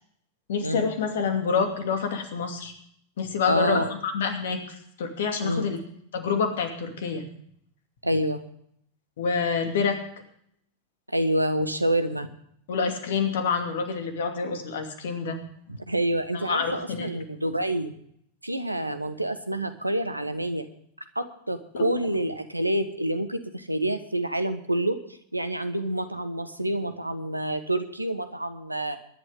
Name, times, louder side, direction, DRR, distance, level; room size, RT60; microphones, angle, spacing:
voice 1, 0.5-2.7 3.2-5.8 6.1-7.2 9.2-10.0 12.7-15.4 16.3-17.1 21.7-21.9, left 5 dB, 60° left, 5 dB, 2.6 m, -27 dB
voice 2, 3.5-3.9 5.4-5.7 8.0-8.4 11.1-12.3 15.7-17.9 18.4-20.7 21.1-25.0 25.3-29.0, right 1 dB, 85° right, 10 dB, 1.3 m, -27 dB
22.5 x 11.0 x 3.7 m, 0.67 s
figure-of-eight pair, 90°, 0 cm